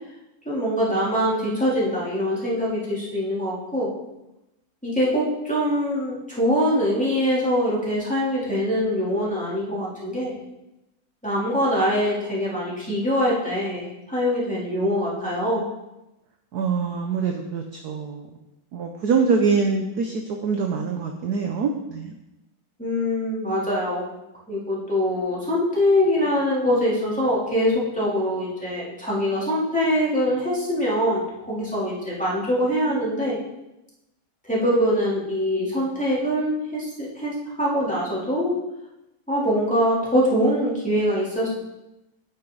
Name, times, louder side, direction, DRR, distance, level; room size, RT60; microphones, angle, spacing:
voice 1, 0.4-3.9 4.8-10.4 11.2-15.6 22.8-24.0 24.5-33.4 34.5-38.5 39.3-41.5, equal, 5° left, -8 dB, 3.0 m, -23 dB
voice 2, 16.5-18.3 18.7-22.1, right 5 dB, 60° right, 3 dB, 1.1 m, -24 dB
9.1 x 8.9 x 3.9 m, 0.94 s
omnidirectional pair, 2.2 m